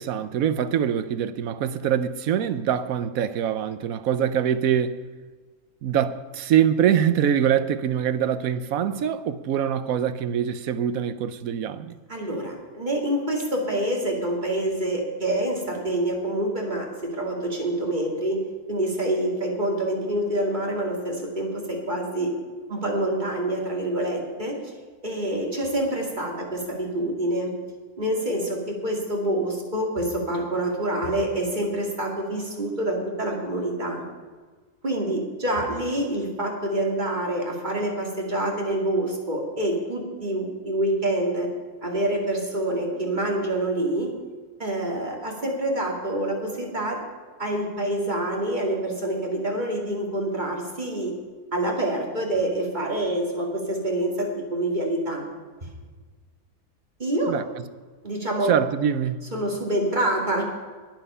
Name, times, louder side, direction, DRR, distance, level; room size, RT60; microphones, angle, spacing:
voice 1, 0.0-5.0 5.8-12.0 57.3-57.7 58.5-59.3, right 9 dB, 75° right, 1.1 m, -24 dB
voice 2, 12.1-18.4 18.7-22.3 22.7-24.6 25.0-27.5 28.0-34.0 34.8-41.5 41.8-44.1 44.6-47.0 47.4-51.1 51.5-55.3 57.0-57.3 58.0-58.5 59.3-60.4, right 1 dB, 30° right, 2.5 m, -26 dB
20.0 x 7.6 x 5.5 m
omnidirectional pair, 1.5 m